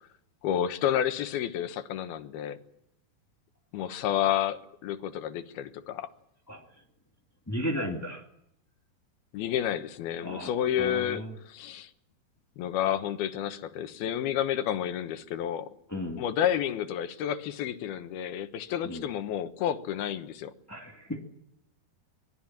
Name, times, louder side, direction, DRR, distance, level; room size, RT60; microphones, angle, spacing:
voice 1, 0.4-2.6 3.7-6.1 9.3-11.9 12.6-15.7 16.2-20.5, left 10 dB, 75° left, 10 dB, 3.1 m, -30 dB
voice 2, 7.5-8.2 10.2-10.5 10.8-11.3 15.9-16.2 18.8-19.1 20.7-21.2, equal, 10° left, 2 dB, 1.1 m, -35 dB
25.5 x 20.0 x 7.5 m, 0.75 s
omnidirectional pair, 4.5 m